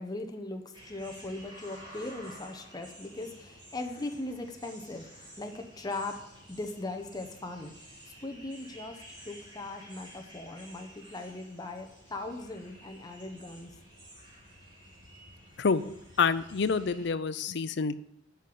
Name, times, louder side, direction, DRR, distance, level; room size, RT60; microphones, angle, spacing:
voice 1, 0.0-7.7 8.2-13.7, left 2 dB, 20° left, 4 dB, 1.0 m, -39 dB
sound 1, 0.7-17.1, equal, 25° right, 3.2 m, -52 dB
voice 2, 16.2-17.9, left 5 dB, 65° left, 14 dB, 0.6 m, -27 dB
8.3 x 5.6 x 7.7 m, 0.82 s
head